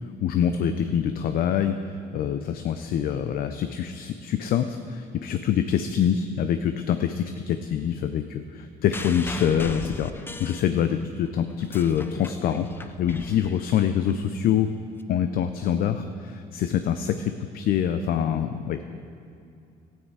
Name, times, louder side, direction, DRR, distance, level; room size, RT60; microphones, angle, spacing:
voice 1, 0.2-14.7 15.1-18.8, left 9 dB, 60° left, 9 dB, 0.5 m, -25 dB
sound 1, 8.9-11.1 11.5-14.1 15.0-15.1, left 2 dB, 15° left, 0.5 m, -39 dB
13.0 x 9.1 x 4.8 m, 2.4 s
cardioid pair, 110°, 17 cm